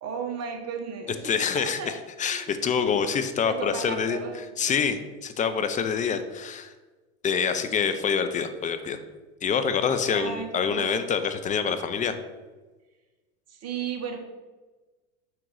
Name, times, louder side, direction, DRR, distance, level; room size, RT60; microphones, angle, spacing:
voice 1, 0.0-1.1 1.5-2.0 2.2-2.5 3.5-4.4 10.1-11.0 13.5-14.2, right 6 dB, 35° right, 3 dB, 1.2 m, -34 dB
voice 2, 1.2-4.2 4.6-6.7 7.2-9.0 9.4-12.2, left 6 dB, 20° left, 9 dB, 0.4 m, -26 dB
5.9 x 3.8 x 4.7 m, 1.3 s
hypercardioid pair, 90°, 42 cm